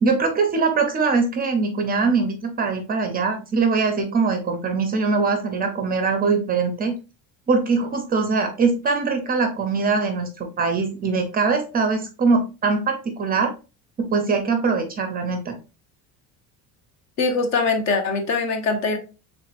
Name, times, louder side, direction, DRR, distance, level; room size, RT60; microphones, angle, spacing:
voice 1, 0.0-7.0 7.5-13.5 14.0-15.6, right 4 dB, 25° right, 6 dB, 0.5 m, -22 dB
voice 2, 17.2-19.0, left 4 dB, 50° left, 6 dB, 0.9 m, -22 dB
4.7 x 3.5 x 2.4 m, 0.31 s
cardioid pair, 155°, 36 cm